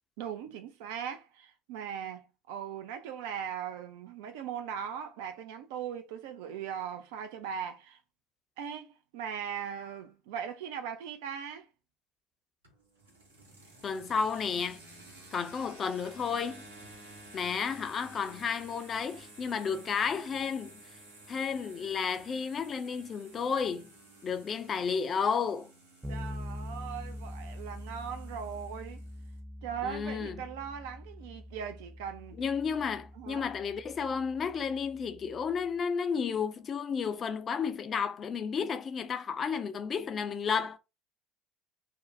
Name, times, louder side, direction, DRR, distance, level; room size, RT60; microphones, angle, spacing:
voice 1, 0.2-8.0 8.6-11.7 26.1-29.0 29.6-32.4 33.2-33.5, right 8 dB, 70° right, 0.3 m, -39 dB
sound 1, 12.6-29.4, right 2 dB, 85° right, 1.0 m, -53 dB
voice 2, 13.8-14.8 15.3-16.6 17.3-20.8 21.3-23.9 24.2-25.7 29.8-30.4 32.4-40.8, left 6 dB, 40° left, 0.4 m, -32 dB
Bass guitar, 26.0-35.7, left 1 dB, 15° right, 0.6 m, -44 dB
2.6 x 2.0 x 2.5 m
figure-of-eight pair, 60°, 0 cm